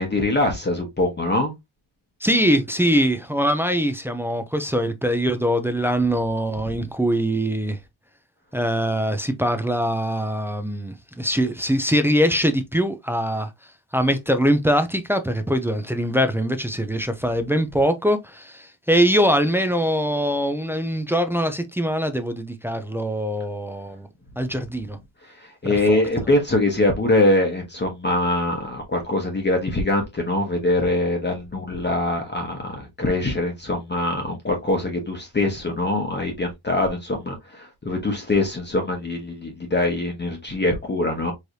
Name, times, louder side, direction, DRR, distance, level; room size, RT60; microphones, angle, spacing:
voice 1, 0.0-1.5 25.4-41.3, left 2 dB, 20° left, 1.0 m, -23 dB
voice 2, 2.2-7.8 8.5-13.5 13.9-24.1 24.4-25.0 25.6-26.0, equal, 5° right, 0.3 m, -22 dB
4.6 x 3.2 x 2.6 m
wide cardioid pair, 165°, 48 cm